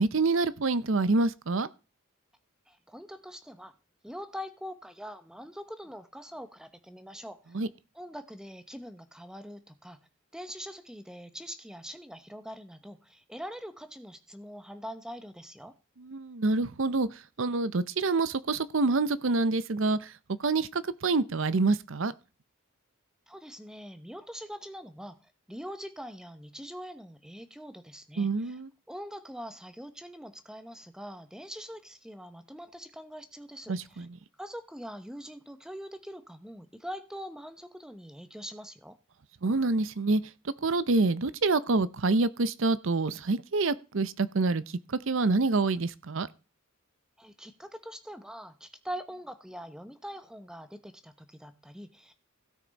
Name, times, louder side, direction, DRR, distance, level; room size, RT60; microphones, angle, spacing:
voice 1, 0.0-1.7 7.5-7.7 16.0-20.1 20.4-22.1 28.2-28.7 33.7-34.2 39.4-44.6 44.9-46.3, right 3 dB, 60° right, 0.7 m, -27 dB
voice 2, 2.7-3.7 4.0-7.6 7.9-10.0 10.3-15.7 23.3-25.2 25.5-28.6 28.9-34.1 34.4-39.0 47.2-52.1, equal, 5° right, 0.9 m, -43 dB
16.5 x 6.0 x 4.1 m
head